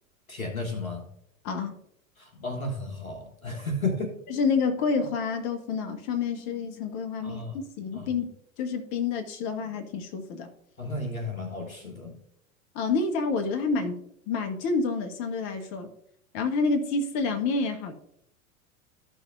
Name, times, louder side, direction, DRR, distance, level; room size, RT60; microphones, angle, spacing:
voice 1, 0.3-1.1 2.2-4.2 7.2-7.6 7.9-8.1 10.8-12.2, left 2 dB, 90° left, 3 dB, 1.6 m, -33 dB
voice 2, 1.4-1.8 4.4-7.4 7.8-8.3 8.6-10.5 12.7-14.0 14.3-15.9 16.3-17.9, left 4 dB, 45° left, 5 dB, 1.5 m, -28 dB
14.0 x 6.3 x 2.6 m, 0.72 s
figure-of-eight pair, 85°, 41 cm